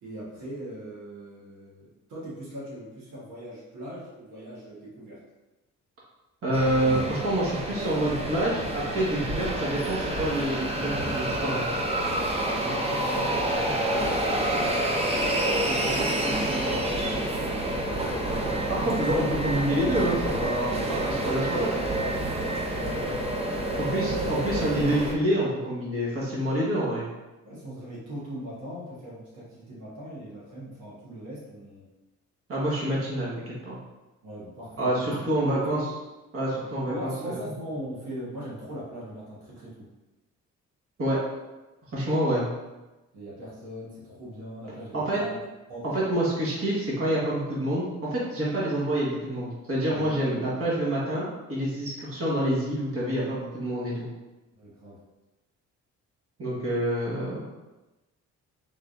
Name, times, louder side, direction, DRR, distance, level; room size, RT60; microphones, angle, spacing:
voice 1, 0.0-5.2 12.6-17.0 27.4-31.8 34.2-35.1 35.5-35.9 36.9-39.9 43.1-45.4 45.7-45.8 49.9-50.1 54.5-55.0, equal, 80° right, -7 dB, 1.3 m, -40 dB
voice 2, 6.4-11.7 18.8-21.7 23.8-27.0 32.5-33.8 34.8-35.8 36.3-37.4 41.0-41.2 41.9-42.4 44.9-45.2 45.8-54.1 56.4-57.4, right 1 dB, 50° right, -6 dB, 1.4 m, -27 dB
sound 1, 6.5-25.1, right 1 dB, 20° right, 0.5 m, -28 dB
3.7 x 3.3 x 2.5 m, 1.1 s
cardioid pair, 90°, 30 cm